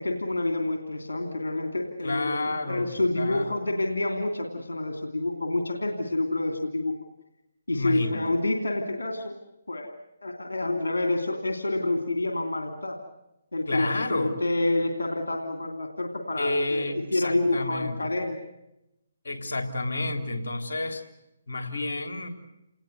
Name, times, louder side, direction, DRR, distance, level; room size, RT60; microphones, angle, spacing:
voice 1, 0.0-6.9 7.7-9.3 9.7-9.9 10.2-13.0 13.5-18.4, left 2 dB, 90° left, 3 dB, 2.8 m, -28 dB
voice 2, 2.0-3.6 7.7-8.4 13.7-14.4 16.4-18.0 19.2-21.0 21.5-22.3, left 2 dB, 75° left, 7 dB, 3.6 m, -30 dB
29.0 x 19.5 x 8.0 m, 0.89 s
hypercardioid pair, 150°, 0 cm